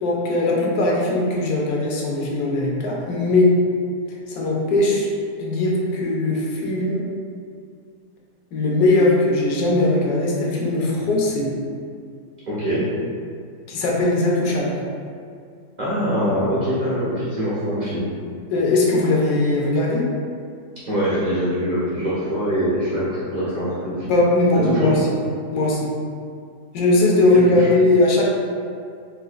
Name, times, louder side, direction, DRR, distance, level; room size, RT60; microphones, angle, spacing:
voice 1, 0.0-3.5 4.3-5.1 5.4-7.1 8.5-11.5 13.7-14.8 18.5-20.1 24.0-25.1 25.5-25.9 26.7-28.3, left 2 dB, 70° left, -3 dB, 1.1 m, -19 dB
voice 2, 12.5-12.9 15.8-18.1 20.8-24.1 24.5-24.9 27.3-27.7, equal, 75° right, -10 dB, 0.4 m, -23 dB
3.9 x 2.4 x 2.4 m, 2.3 s
omnidirectional pair, 1.8 m